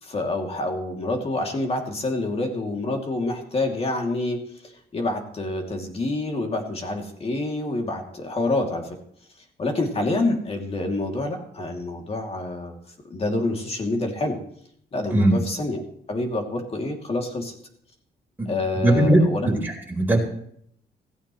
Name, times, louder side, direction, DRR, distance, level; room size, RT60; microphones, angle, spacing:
voice 1, 0.0-9.0 9.6-12.8 13.0-14.4 14.9-15.8 16.1-17.5 18.5-19.5, left 2 dB, 35° left, 3 dB, 2.8 m, -27 dB
voice 2, 18.8-19.2 19.4-20.2, right 1 dB, 10° right, -1 dB, 4.3 m, -19 dB
16.5 x 15.5 x 3.2 m, 0.68 s
cardioid pair, 130°, 16 cm